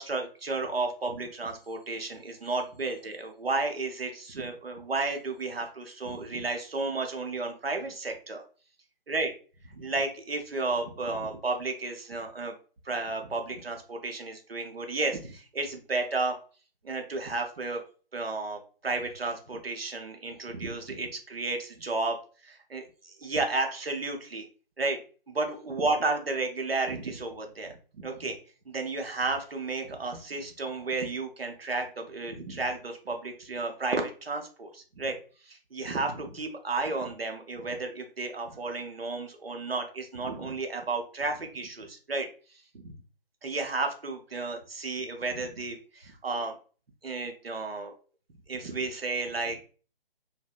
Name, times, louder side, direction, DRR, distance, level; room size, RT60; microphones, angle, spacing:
voice 1, 0.0-8.4 9.1-9.3 9.7-12.5 12.8-16.3 16.8-17.8 18.1-22.2 22.4-24.5 24.8-25.0 25.3-28.4 28.7-35.2 35.5-42.3 42.8-42.9 43.4-46.6 47.0-47.9 48.5-49.7, right 3 dB, 80° right, 4 dB, 0.7 m, -32 dB
2.7 x 2.1 x 2.3 m, 0.37 s
figure-of-eight pair, 150°, 30 cm